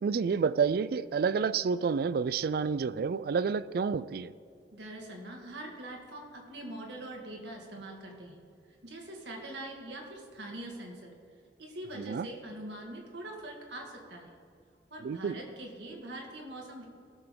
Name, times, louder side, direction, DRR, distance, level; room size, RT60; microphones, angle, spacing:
voice 1, 0.0-4.3 11.9-12.3 15.0-15.4, right 5 dB, 55° right, 0.3 m, -29 dB
voice 2, 4.7-8.4 8.8-11.1 11.6-14.3 14.9-16.9, right 1 dB, 80° right, 2.0 m, -43 dB
17.0 x 6.9 x 3.8 m
head